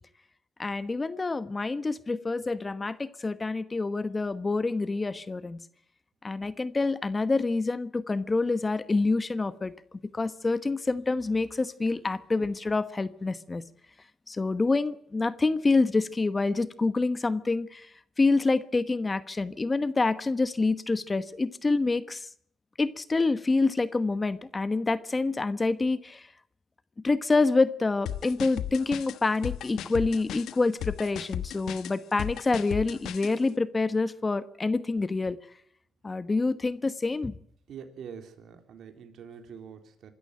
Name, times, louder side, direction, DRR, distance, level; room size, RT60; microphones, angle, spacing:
voice 1, 0.6-5.6 6.2-9.7 10.1-13.6 14.3-17.9 18.2-22.3 22.8-26.3 27.0-35.4 36.0-37.3, left 3 dB, 25° left, 14 dB, 1.1 m, -27 dB
sound 1, 28.1-33.3, left 10 dB, 80° left, 1.2 m, -35 dB
voice 2, 37.7-40.1, right 7 dB, 70° right, 6 dB, 3.3 m, -45 dB
25.0 x 13.5 x 8.8 m, 0.69 s
cardioid pair, 90°, 0 cm